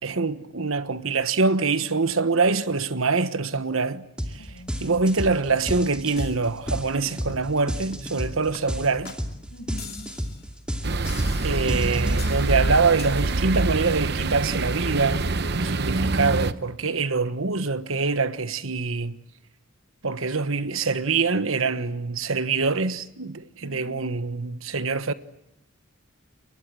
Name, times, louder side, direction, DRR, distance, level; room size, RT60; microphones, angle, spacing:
voice 1, 0.0-4.1 4.8-9.1 11.4-19.2 20.0-25.1, right 4 dB, 80° right, 1.3 m, -24 dB
sound 1, 4.2-4.4 4.7-12.5, equal, 5° right, 2.5 m, -32 dB
voice 2, 4.4-4.7 9.5-10.1 23.6-24.1, equal, 75° left, 7.0 m, -43 dB
sound 2, 6.2-6.4 6.7-7.0 7.3-7.5 7.9-8.2 8.5-8.6 9.0-9.2 9.8-10.4 11.0-11.8 12.2-12.5 13.0-13.1, left 3 dB, 50° left, 2.3 m, -39 dB
sound 3, 10.8-16.5, right 2 dB, 50° right, 0.9 m, -25 dB
29.0 x 23.5 x 7.6 m
head